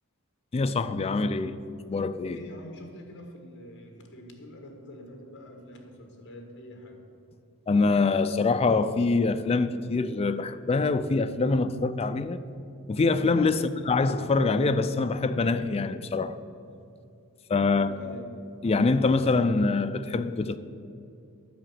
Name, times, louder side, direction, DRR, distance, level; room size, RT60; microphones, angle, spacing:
voice 1, 0.5-1.5 1.9-2.4 7.7-12.4 12.9-16.4 17.5-18.1 18.6-20.6, left 3 dB, 30° left, 0.3 m, -24 dB
voice 2, 2.3-7.0 13.5-13.8 17.7-18.3, left 1 dB, 55° left, 1.4 m, -45 dB
10.5 x 4.9 x 7.8 m
head